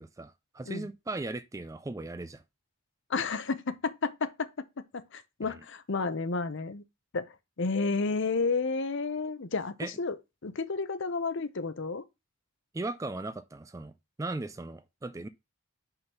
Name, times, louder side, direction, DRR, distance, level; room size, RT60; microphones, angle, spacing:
voice 1, 0.0-2.4 5.4-5.6 9.8-9.9 12.7-15.3, right 2 dB, 15° right, 0.3 m, -38 dB
voice 2, 3.1-4.5 4.9-6.8 7.1-7.3 7.6-10.2 10.4-12.0, left 4 dB, 60° left, 0.7 m, -31 dB
5.5 x 4.0 x 5.6 m
head